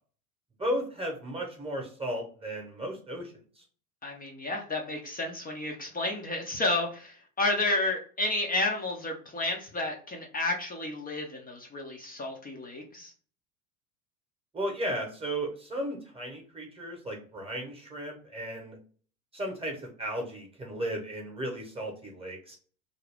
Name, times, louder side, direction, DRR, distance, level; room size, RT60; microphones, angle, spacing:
voice 1, 0.6-3.6 14.5-18.8 19.3-22.6, right 1 dB, 15° right, 1 dB, 0.9 m, -35 dB
voice 2, 4.0-13.1, left 2 dB, 20° left, 1 dB, 0.6 m, -31 dB
2.5 x 2.2 x 3.4 m, 0.43 s
hypercardioid pair, 80°, 44 cm